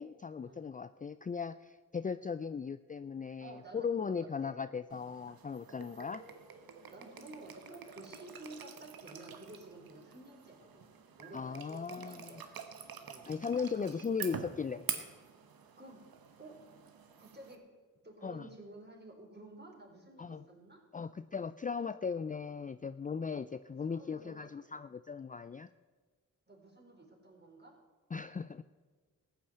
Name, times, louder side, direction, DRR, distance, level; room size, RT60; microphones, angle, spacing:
voice 1, 0.0-6.2 11.3-12.3 13.3-15.1 18.2-18.5 20.2-20.4 20.9-25.7 28.1-28.6, left 5 dB, 25° left, 13 dB, 0.4 m, -38 dB
voice 2, 3.4-4.6 6.9-10.8 11.2-12.6 13.0-13.3 13.8-14.0 15.8-16.1 16.4-16.6 17.2-17.6 18.0-20.8 23.8-24.5 26.5-27.8, right 2 dB, 30° right, 1 dB, 4.1 m, -52 dB
sound 1, 4.9-17.5, right 7 dB, 80° right, 1.3 m, -47 dB
14.0 x 8.6 x 7.9 m, 1.5 s
cardioid pair, 45°, 35 cm